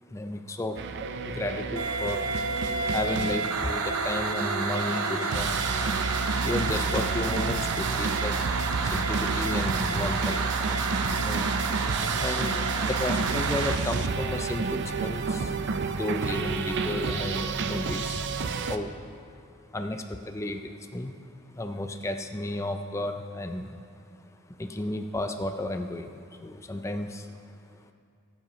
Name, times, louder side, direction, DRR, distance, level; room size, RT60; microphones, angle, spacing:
voice 1, 0.1-0.8 1.2-2.3 2.8-5.9 6.4-8.4 8.8-10.6 11.2-11.5 12.1-15.6 15.9-18.2 18.7-18.9 19.7-21.1 21.5-23.8 24.5-27.4, left 2 dB, 15° left, 6 dB, 0.4 m, -33 dB
sound 1, 0.8-18.8, right 4 dB, 55° right, 0.5 m, -30 dB
sound 2, 1.8-13.8, right 4 dB, 85° right, 0.8 m, -30 dB
sound 3, 4.9-5.8 6.9-7.7, left 2 dB, 55° left, 1.5 m, -43 dB
21.0 x 7.4 x 3.1 m, 2.4 s
head